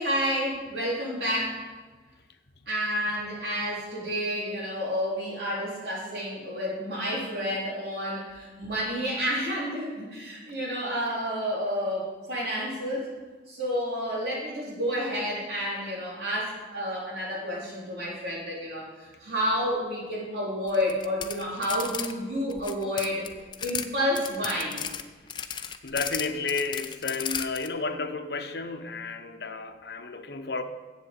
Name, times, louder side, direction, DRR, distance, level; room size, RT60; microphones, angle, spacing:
voice 1, 0.0-1.6 2.7-13.1 13.5-18.9 19.2-23.3 23.6-24.9, equal, 70° right, -5 dB, 4.0 m, -30 dB
sound 1, 20.7-22.1 22.4-23.9 24.1-27.7, left 8 dB, 25° left, 0.5 m, -35 dB
voice 2, 25.8-30.6, left 3 dB, 70° left, 8 dB, 0.8 m, -32 dB
7.7 x 7.6 x 8.0 m, 1.3 s
head